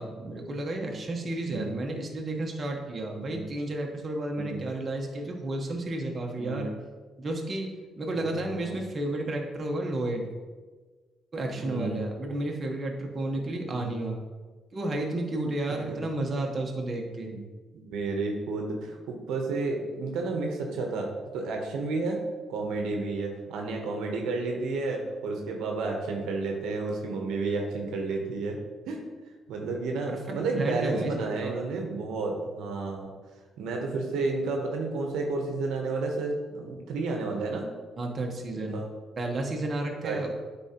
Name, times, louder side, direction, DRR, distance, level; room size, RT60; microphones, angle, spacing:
voice 1, 0.0-6.7 7.2-7.7 8.0-10.3 11.3-14.2 14.7-17.3 24.1-24.2 30.1-31.1 31.4-31.6 38.0-38.8 39.2-40.3, right 2 dB, 35° right, 1 dB, 1.1 m, -32 dB
voice 2, 6.4-6.7 8.1-8.8 11.4-12.0 13.7-13.9 15.9-16.0 17.2-17.5 17.7-22.2 22.5-28.6 28.9-29.0 29.5-33.1 33.6-37.6 38.5-38.9 40.0-40.3, right 3 dB, 90° right, 1 dB, 0.9 m, -31 dB
9.0 x 3.9 x 2.9 m, 1.4 s
cardioid pair, 90°, 0 cm